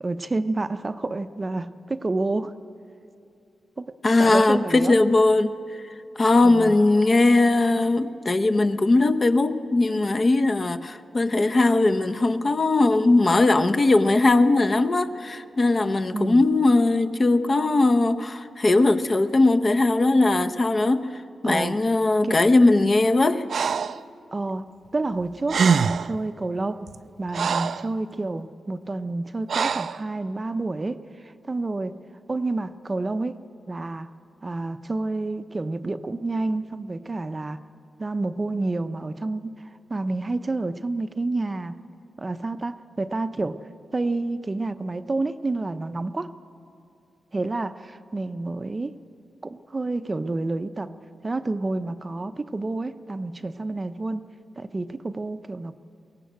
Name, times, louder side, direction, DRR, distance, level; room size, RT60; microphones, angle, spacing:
voice 1, 0.0-2.5 3.8-5.0 6.4-6.8 16.1-16.4 21.4-21.8 22.2-22.4 24.3-26.9 27.2-32.0 32.3-34.1 34.4-37.6 38.0-41.8 42.2-43.7 43.9-46.3 47.3-49.0 49.4-50.9 51.2-54.3 54.6-55.8, right 2 dB, 30° right, 11 dB, 0.6 m, -29 dB
voice 2, 4.0-5.5 6.2-21.1 21.4-23.4, left 2 dB, 35° left, 8 dB, 0.8 m, -19 dB
Breathing, 23.5-24.0 25.2-25.3 25.5-26.2 26.9-27.9 29.5-30.0, right 6 dB, 65° right, 0.4 m, -24 dB
22.0 x 17.5 x 8.1 m, 2.6 s
cardioid pair, 95°, 0 cm